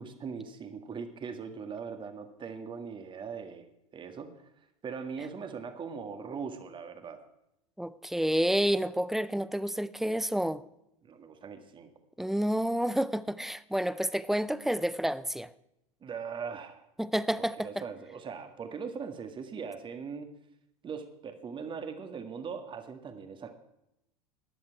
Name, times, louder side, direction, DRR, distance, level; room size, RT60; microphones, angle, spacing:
voice 1, 0.0-4.5 4.8-7.2 11.0-11.9 16.0-16.9 17.4-20.3 20.8-23.5, right 6 dB, 25° right, 1.8 m, -40 dB
voice 2, 7.8-10.6 12.2-15.5 17.0-17.7, equal, ahead, 0.5 m, -29 dB
15.0 x 10.5 x 4.7 m
figure-of-eight pair, 85°, 19 cm